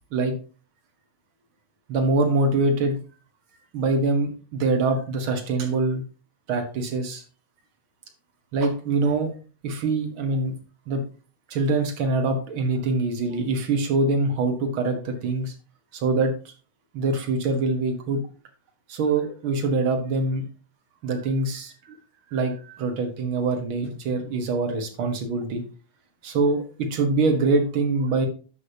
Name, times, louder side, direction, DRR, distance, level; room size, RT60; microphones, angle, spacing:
voice 1, 1.9-3.0 3.7-6.0 6.5-7.2 8.5-9.3 9.6-10.5 10.9-11.0 11.5-15.5 15.9-16.5 16.9-18.2 18.9-20.4 21.0-21.9 22.3-25.6 26.2-28.3, right 3 dB, 50° right, 4 dB, 1.6 m, -24 dB
11.0 x 7.2 x 2.8 m, 0.36 s
omnidirectional pair, 3.9 m